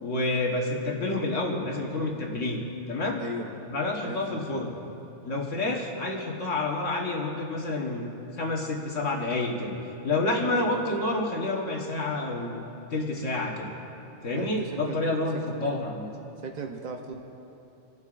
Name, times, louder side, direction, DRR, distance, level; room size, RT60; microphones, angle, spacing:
voice 1, 0.0-2.6 2.9-3.2 3.7-4.7 5.2-8.1 8.4-9.8 10.0-12.6 12.9-13.7 14.2-16.1, left 2 dB, 70° left, -1 dB, 1.6 m, -29 dB
voice 2, 3.2-3.5 4.0-4.5 10.5-10.7 14.3-15.0 15.3-15.7 16.4-17.2, right 3 dB, 40° right, 3 dB, 0.7 m, -37 dB
28.0 x 11.5 x 2.5 m, 2.9 s
omnidirectional pair, 1.3 m